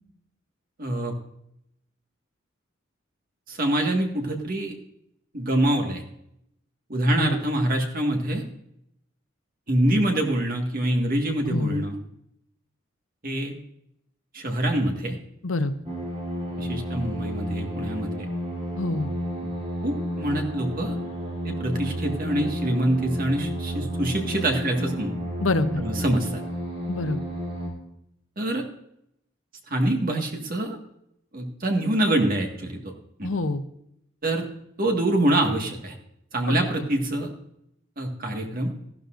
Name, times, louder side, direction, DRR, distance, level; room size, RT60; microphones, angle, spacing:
voice 1, 0.8-1.1 3.5-4.8 5.3-6.0 6.9-8.4 9.7-12.0 13.2-13.5 14.3-15.2 16.6-18.3 19.8-21.0 21.4-25.1 25.8-26.4 28.4-28.6 29.7-30.8 31.3-32.8 33.2-33.3 34.2-34.5 34.8-36.0 36.3-37.3 38.0-38.7, right 1 dB, 45° right, 2 dB, 1.8 m, -25 dB
voice 2, 11.5-11.8 15.4-15.7 18.8-19.1 25.4-25.8 26.9-27.2 33.2-33.6 36.5-36.6, left 2 dB, 90° left, 10 dB, 0.9 m, -26 dB
sound 1, 15.8-27.7, equal, 30° right, 3.3 m, -31 dB
14.0 x 12.0 x 2.6 m, 0.77 s
head